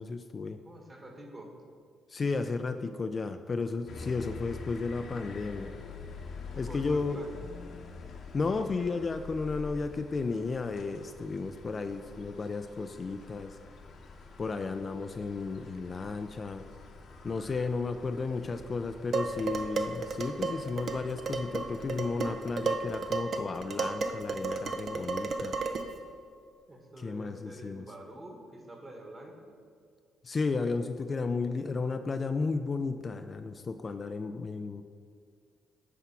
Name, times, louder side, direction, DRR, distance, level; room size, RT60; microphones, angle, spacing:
voice 1, 0.0-0.6 2.1-5.7 6.6-7.2 8.3-13.6 14.4-16.6 17.2-25.6 27.0-27.8 30.2-34.8, left 4 dB, 35° left, 8 dB, 0.4 m, -33 dB
voice 2, 0.6-1.5 6.5-7.3 26.7-29.5, right 1 dB, 25° right, 2 dB, 1.5 m, -47 dB
sound 1, 3.9-23.1, left 4 dB, 60° left, 0.9 m, -47 dB
Dishes pots and pans, 19.1-26.0, right 4 dB, 55° right, 0.6 m, -33 dB
9.5 x 3.6 x 5.8 m, 2.1 s
cardioid pair, 90°, 0 cm